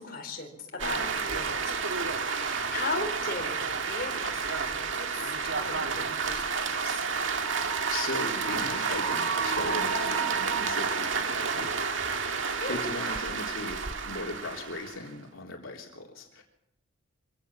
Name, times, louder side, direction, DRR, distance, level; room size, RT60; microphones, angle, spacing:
voice 1, 0.0-2.0 2.3-7.0 12.6-12.8, left 3 dB, 45° left, 2 dB, 4.5 m, -38 dB
sound 1, 0.8-15.1, right 5 dB, 70° right, 1.9 m, -30 dB
voice 2, 7.9-16.4, left 2 dB, 80° left, 0 dB, 3.5 m, -38 dB
25.0 x 17.0 x 7.3 m, 0.78 s
head